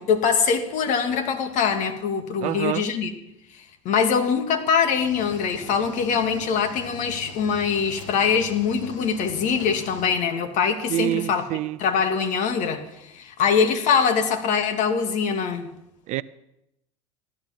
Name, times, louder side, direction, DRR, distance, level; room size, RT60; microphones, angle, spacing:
voice 1, 0.0-3.1 3.9-11.4 11.8-15.7, left 6 dB, 50° left, 2.0 m, -23 dB
voice 2, 2.4-2.9 10.9-11.8 16.1-16.2, right 15 dB, 45° right, 0.5 m, -26 dB
Cricket / Waves surf, 5.0-10.1, left 4 dB, 75° left, 1.6 m, -42 dB
15.0 x 11.5 x 6.0 m
hypercardioid pair, 75°, 16 cm